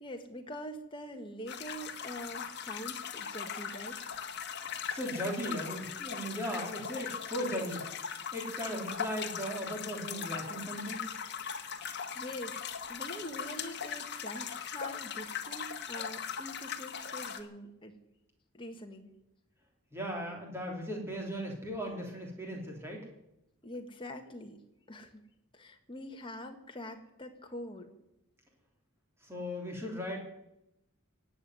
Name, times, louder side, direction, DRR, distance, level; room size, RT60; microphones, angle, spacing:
voice 1, 0.0-4.0 11.5-11.9 12.1-12.6 12.9-17.9 18.5-19.1 23.6-24.6 24.9-25.2 25.5-27.9, left 1 dB, 20° left, 3 dB, 1.7 m, -44 dB
sound 1, 1.5-17.4, left 7 dB, 50° left, 1.4 m, -39 dB
voice 2, 4.6-7.9 8.3-11.1 19.9-23.0 29.2-30.2, equal, 10° right, -1 dB, 3.6 m, -37 dB
18.0 x 8.1 x 9.5 m, 0.87 s
head